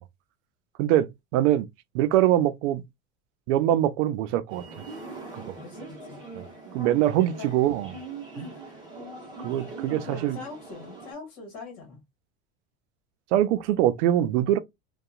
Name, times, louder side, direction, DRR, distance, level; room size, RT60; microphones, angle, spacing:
voice 1, 0.8-1.7 1.9-2.8 3.5-4.6 5.3-5.5 6.4-6.5 6.7-7.9 8.4-8.5 9.4-10.4 13.3-14.6, right 12 dB, 75° right, 0.5 m, -23 dB
sound 1, 4.5-11.1, right 3 dB, 10° right, 0.9 m, -42 dB
voice 2, 5.6-6.2 7.3-8.0 8.3-8.8 10.0-12.0, left 4 dB, 45° left, 1.3 m, -43 dB
2.7 x 2.3 x 2.3 m
supercardioid pair, 160°, 35 cm